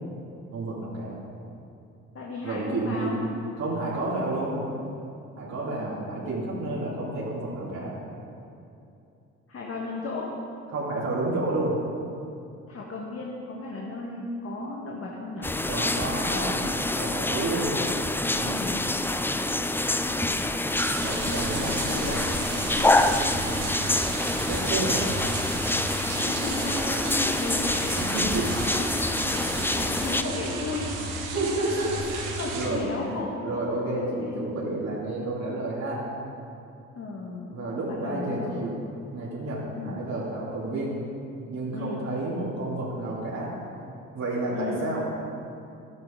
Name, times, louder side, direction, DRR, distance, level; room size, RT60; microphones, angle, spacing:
voice 1, 0.5-1.2 2.4-3.2 3.6-4.6 5.4-8.0 10.7-11.8 15.6-16.5 16.9-17.7 18.3-18.7 21.0-21.7 24.5-25.0 28.0-28.5 29.2-29.7 31.3-36.0 37.5-38.8 39.1-41.0 41.5-43.5 44.1-45.1, right 2 dB, 55° right, -7 dB, 3.1 m, -30 dB
voice 2, 2.1-3.2 5.6-6.1 9.5-10.3 12.7-15.5 16.1-16.7 18.5-18.9 21.6-22.3 22.5-23.2 26.1-28.9 29.4-31.9 32.4-33.5 34.0-34.4 36.9-38.6 39.8-40.0 41.7-42.1 44.5-44.8, left 3 dB, 45° left, -3 dB, 1.7 m, -35 dB
sound 1, 15.4-30.2, left 2 dB, 5° left, 0.5 m, -26 dB
sound 2, 20.8-32.7, right 3 dB, 90° right, 1.6 m, -34 dB
11.5 x 11.0 x 3.9 m, 2.6 s
supercardioid pair, 65°, 33 cm